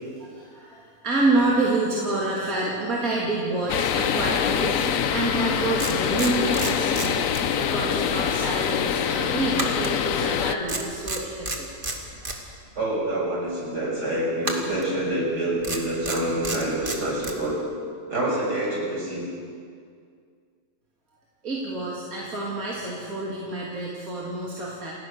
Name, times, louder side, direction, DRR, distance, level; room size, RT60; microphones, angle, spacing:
voice 1, 0.2-11.7 21.4-24.9, right 2 dB, 60° right, -5 dB, 3.4 m, -28 dB
sound 1, 3.7-10.6, left 8 dB, 60° left, 1.1 m, -25 dB
sound 2, 5.8-7.8 8.1-8.3 9.6-10.4 10.7-12.4 14.4-14.9 15.6-17.4, right 2 dB, 30° right, 2.3 m, -31 dB
voice 2, 12.7-17.6 18.1-19.2, right 1 dB, 80° right, -3 dB, 6.7 m, -26 dB
28.5 x 16.0 x 6.7 m, 2.2 s
omnidirectional pair, 1.7 m